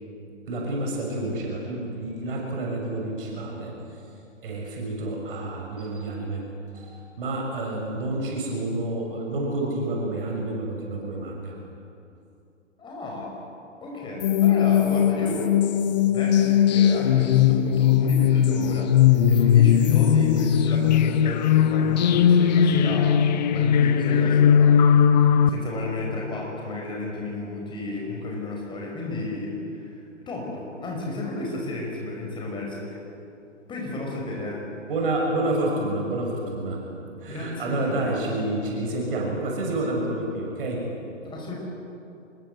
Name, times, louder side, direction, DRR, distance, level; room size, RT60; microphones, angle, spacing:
voice 1, 0.5-3.7 4.4-6.4 6.7-11.5 20.4-20.5 34.9-36.8 37.2-40.8, right 2 dB, 45° right, -1 dB, 6.3 m, -29 dB
voice 2, 12.8-13.4 13.8-15.7 16.0-24.8 25.0-32.9 33.7-34.6 37.3-38.0 41.2-41.6, left 2 dB, 10° left, -1 dB, 5.3 m, -33 dB
sound 1, 14.2-25.5, left 9 dB, 35° left, 1.0 m, -19 dB
26.0 x 21.0 x 8.1 m, 2.7 s
figure-of-eight pair, 135°, 38 cm